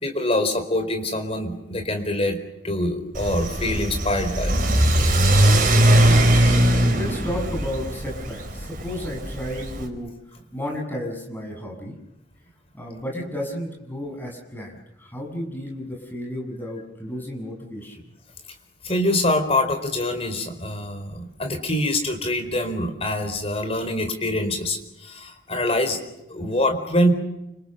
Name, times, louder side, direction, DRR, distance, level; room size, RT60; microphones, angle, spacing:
voice 1, 0.0-2.4 2.6-4.5 18.8-26.0 26.3-27.1, left 1 dB, 35° left, 6 dB, 4.6 m, -24 dB
Car / Accelerating revving vroom, 3.1-9.9, right 1 dB, 50° right, 4.9 m, -20 dB
voice 2, 5.8-10.1 10.5-12.0 12.7-18.0, equal, 10° left, 0 dB, 7.6 m, -33 dB
29.5 x 26.5 x 6.9 m, 0.89 s
head